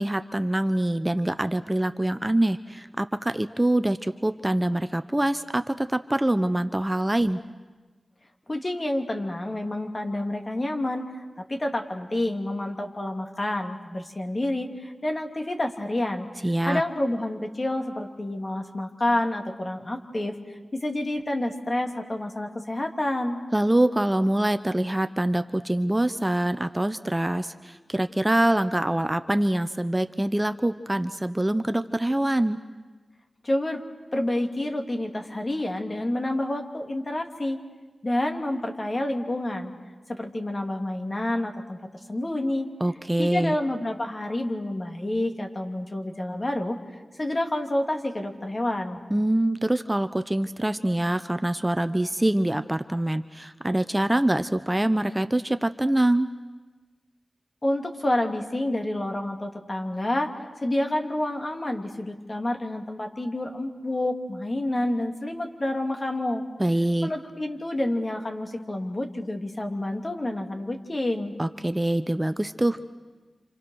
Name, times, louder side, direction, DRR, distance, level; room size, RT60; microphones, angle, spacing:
voice 1, 0.0-7.4 16.4-16.8 23.5-32.6 42.8-43.6 49.1-56.3 66.6-67.1 71.4-72.9, right 1 dB, 20° right, 10 dB, 0.8 m, -24 dB
voice 2, 8.5-16.3 16.7-23.4 33.4-33.8 34.1-37.6 38.0-39.7 40.1-41.8 42.1-42.7 43.2-46.8 47.2-49.0 57.6-60.3 60.6-66.4 67.0-71.3, left 1 dB, 40° left, 4 dB, 2.6 m, -28 dB
29.0 x 27.0 x 6.4 m, 1.3 s
cardioid pair, 45°, 0 cm